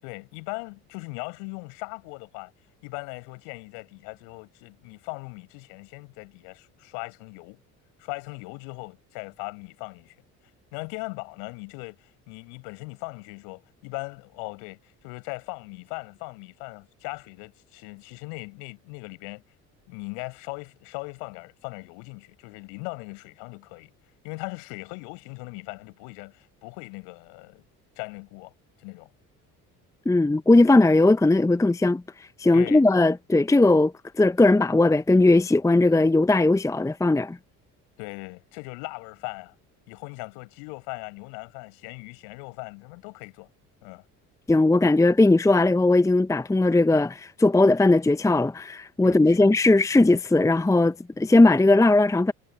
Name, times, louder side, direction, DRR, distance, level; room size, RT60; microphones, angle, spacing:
voice 1, 0.0-2.5 2.8-7.6 8.0-10.1 10.7-19.4 19.9-23.9 24.2-27.6 28.0-28.5 28.8-29.1 32.5-32.8 38.0-39.5 39.9-43.5 43.8-44.0 49.0-49.5, left 40 dB or more, 65° left, 8.0 m, -39 dB
voice 2, 30.1-32.0 32.4-37.4 44.5-52.3, left 2 dB, 5° left, 0.9 m, -19 dB
figure-of-eight pair, 55°, 45 cm